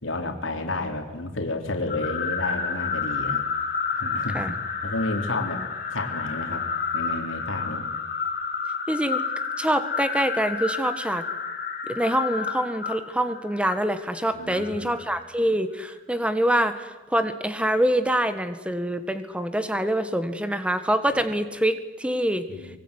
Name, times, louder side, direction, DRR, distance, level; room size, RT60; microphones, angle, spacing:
voice 1, 0.0-3.4 3.9-4.5 4.8-5.6 5.9-6.6 6.9-7.9 14.3-14.9 22.5-22.8, left 2 dB, 90° left, 3 dB, 3.7 m, -31 dB
sound 1, 1.9-15.2, left 5 dB, 45° left, 4.7 m, -30 dB
voice 2, 8.9-9.2 9.6-11.3 11.9-22.5, right 1 dB, 5° right, 10 dB, 1.6 m, -25 dB
24.0 x 23.5 x 9.9 m, 1.2 s
head